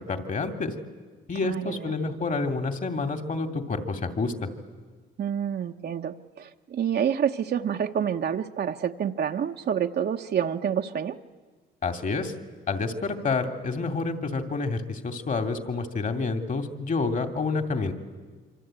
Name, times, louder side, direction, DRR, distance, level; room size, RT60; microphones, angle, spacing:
voice 1, 0.1-0.7 1.3-4.5 11.8-12.3 12.7-17.9, left 4 dB, 40° left, 8 dB, 2.6 m, -28 dB
voice 2, 1.4-1.9 5.2-11.2, right 8 dB, 55° right, 4 dB, 1.0 m, -28 dB
26.0 x 25.0 x 9.0 m, 1.4 s
cardioid pair, 90°, 20 cm